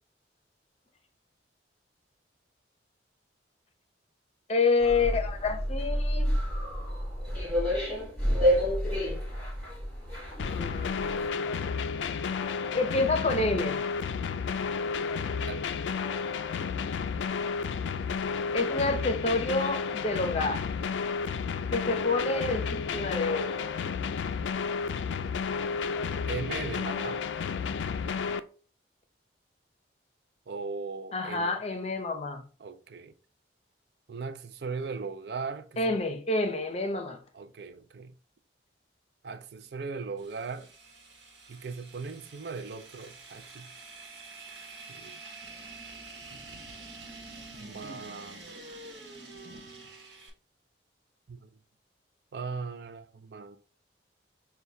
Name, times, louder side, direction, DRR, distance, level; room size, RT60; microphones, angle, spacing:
voice 1, 4.5-6.3 10.4-11.3 12.7-13.8 18.5-20.6 21.7-23.8 31.1-32.4 35.8-37.2 47.8-48.0, left 3 dB, 35° left, 0.6 m, -28 dB
sound 1, 4.8-11.3, equal, 10° left, 1.4 m, -29 dB
sound 2, 10.4-28.4, left 5 dB, 80° left, 0.3 m, -32 dB
voice 2, 26.3-27.2 30.5-31.6 32.6-33.1 34.1-36.0 37.3-38.1 39.2-40.7 41.5-43.7 44.9-45.2 47.6-48.5 51.3-51.5 52.3-53.6, right 4 dB, 60° right, 0.4 m, -38 dB
sound 3, 40.2-50.3, right 3 dB, 75° right, 1.1 m, -47 dB
6.4 x 2.2 x 2.6 m
head